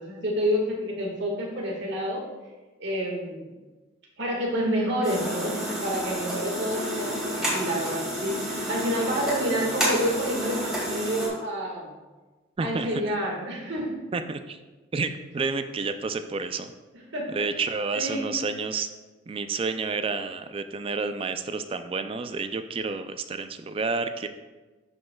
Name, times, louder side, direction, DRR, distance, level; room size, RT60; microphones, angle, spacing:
voice 1, 0.0-2.3 2.8-3.6 4.2-11.9 12.6-14.0 17.1-17.3 17.9-18.2, equal, 60° right, -1 dB, 1.6 m, -29 dB
sound 1, 5.0-11.3, equal, 5° right, 2.0 m, -30 dB
voice 2, 12.6-12.9 14.1-14.6 14.9-16.7 17.3-18.9 19.3-24.3, right 4 dB, 30° right, 9 dB, 0.3 m, -30 dB
11.5 x 5.3 x 2.3 m, 1.2 s
head